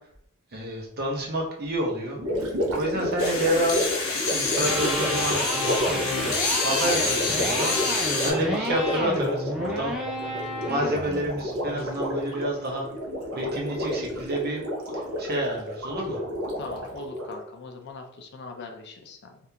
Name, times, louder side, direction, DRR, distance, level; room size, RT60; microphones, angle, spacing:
voice 1, 0.5-2.2 2.7-3.8 4.3-6.3 6.6-7.8 8.2-10.0 10.7-12.9 13.3-14.6 14.9-16.2, right 1 dB, 45° right, 0 dB, 0.8 m, -29 dB
Gurgling, 2.2-17.4, equal, 80° right, 0.7 m, -31 dB
sound 1, 3.2-8.3, left 4 dB, 80° left, 1.0 m, -28 dB
Electric guitar, 4.6-12.6, equal, 5° right, 0.4 m, -31 dB
voice 2, 16.6-19.4, left 3 dB, 55° left, 4 dB, 0.5 m, -41 dB
3.6 x 2.4 x 2.8 m, 0.71 s
head